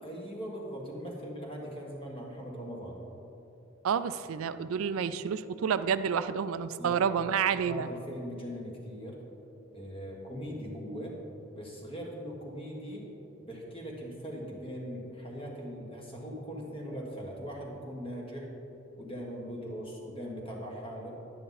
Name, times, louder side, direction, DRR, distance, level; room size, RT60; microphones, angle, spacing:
voice 1, 0.0-3.0 6.8-7.0 7.6-9.2 9.7-11.1 11.5-13.1 13.4-18.5 19.0-21.1, equal, 25° left, -2 dB, 1.7 m, -40 dB
voice 2, 3.8-7.9, right 7 dB, 90° right, 13 dB, 0.4 m, -29 dB
10.5 x 9.1 x 4.1 m, 2.9 s
head